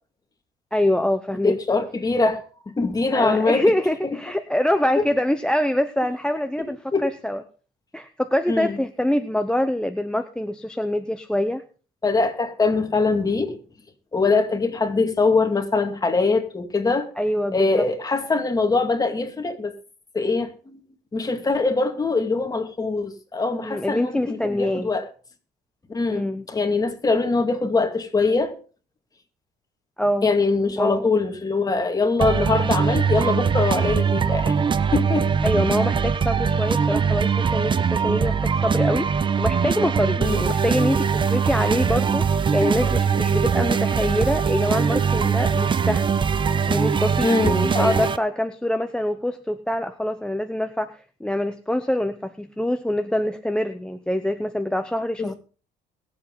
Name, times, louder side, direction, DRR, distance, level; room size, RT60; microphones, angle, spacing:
voice 1, 0.7-1.6 3.1-7.4 7.9-11.6 17.2-17.9 23.6-24.9 26.1-26.4 30.0-30.3 30.8-31.1 35.4-46.1 46.7-55.3, left 1 dB, 5° left, 0.7 m, -25 dB
voice 2, 1.4-3.7 5.0-5.1 6.9-7.1 8.5-8.8 12.0-13.6 14.1-17.1 17.5-19.7 20.1-20.8 21.1-25.1 25.9-28.5 30.2-34.6 34.9-35.3 40.2-40.5 42.8-42.9 47.2-48.0 55.2-55.3, left 3 dB, 20° left, 2.3 m, -23 dB
sound 1, 32.2-48.2, right 6 dB, 30° right, 0.7 m, -22 dB
22.0 x 7.7 x 4.0 m
cardioid pair, 110°, 17 cm